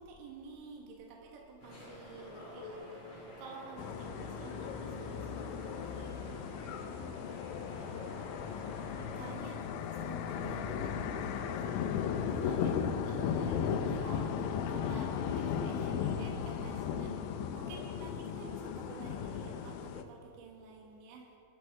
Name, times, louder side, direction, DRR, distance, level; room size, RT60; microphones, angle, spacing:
voice 1, 0.0-6.4 8.5-14.3 14.7-21.4, right 4 dB, 75° right, -1 dB, 3.6 m, -51 dB
sound 1, 1.6-9.3, left 1 dB, 40° left, 4.0 m, -48 dB
sound 2, 3.8-20.0, left 7 dB, 85° left, 3.1 m, -36 dB
22.0 x 12.5 x 3.6 m, 2.5 s
omnidirectional pair, 5.2 m